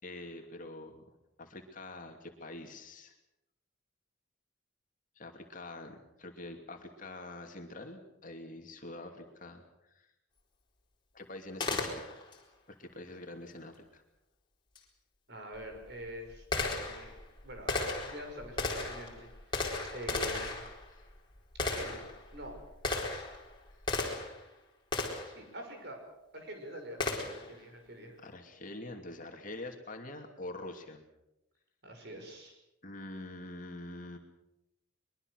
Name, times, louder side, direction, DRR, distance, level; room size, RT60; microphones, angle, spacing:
voice 1, 0.0-1.1 1.4-3.2 5.2-10.1 11.1-12.2 12.7-14.0 20.9-21.1 28.2-31.0 32.8-34.2, left 2 dB, 40° left, 3 dB, 2.7 m, -45 dB
Gunshot gunfire, 11.6-12.4 14.7-14.8 15.6-24.4 24.9-25.4 27.0-27.5, left 3 dB, 25° left, 4.3 m, -36 dB
voice 2, 15.3-17.1 17.4-20.6 21.6-22.0 22.3-22.6 23.1-23.2 25.2-26.0 26.3-28.2 31.8-32.6, equal, 55° right, 3 dB, 5.8 m, -45 dB
23.0 x 22.5 x 6.5 m, 0.88 s
head